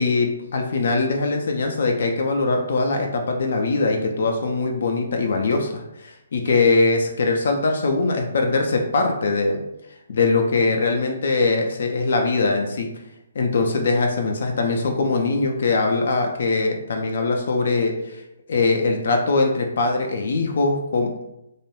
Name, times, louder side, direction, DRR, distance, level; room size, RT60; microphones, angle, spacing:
voice 1, 0.0-9.6 10.1-12.9 13.4-18.2 18.5-21.1, left 3 dB, 55° left, 3 dB, 0.3 m, -21 dB
2.3 x 2.1 x 3.1 m, 0.87 s
figure-of-eight pair, 130°, 0 cm